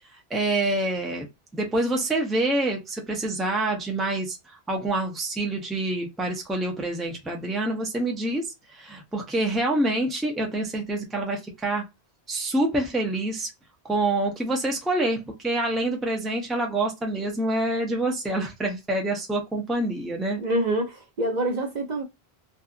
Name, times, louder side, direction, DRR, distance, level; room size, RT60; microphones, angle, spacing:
voice 1, 0.3-1.3 1.5-11.9 12.3-13.5 13.8-20.4, right 2 dB, ahead, 0.5 m, -26 dB
voice 2, 20.4-22.0, right 1 dB, 50° right, 0.7 m, -26 dB
2.6 x 2.3 x 2.3 m
omnidirectional pair, 1.0 m